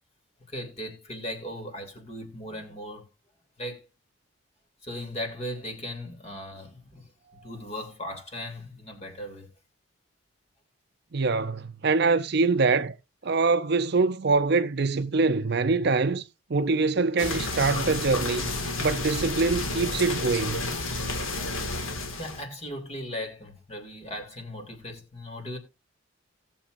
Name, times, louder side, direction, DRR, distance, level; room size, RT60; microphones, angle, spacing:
voice 1, 0.5-3.1 3.6-3.9 4.8-9.5 22.2-25.6, left 1 dB, 30° left, 2.9 m, -38 dB
voice 2, 11.1-12.9 13.2-16.2 16.5-18.5 18.8-20.6, right 4 dB, 50° right, 0.5 m, -24 dB
sound 1, 17.2-22.4, left 2 dB, 80° left, 2.0 m, -31 dB
18.0 x 7.1 x 2.5 m
head